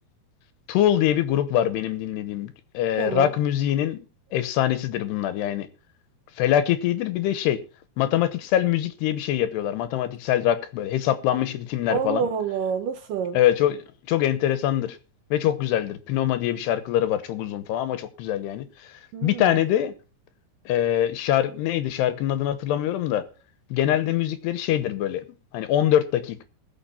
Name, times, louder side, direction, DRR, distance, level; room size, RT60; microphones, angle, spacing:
voice 1, 0.7-4.0 4.3-5.7 6.4-7.6 8.0-12.3 13.3-15.0 15.3-18.7 19.2-19.9 20.7-23.2 23.7-25.3 25.5-26.4, left 11 dB, 85° left, 3.1 m, -24 dB
voice 2, 3.0-3.3 11.9-13.4 19.1-19.6, right 7 dB, 70° right, 2.2 m, -27 dB
20.5 x 6.9 x 4.3 m
omnidirectional pair, 4.7 m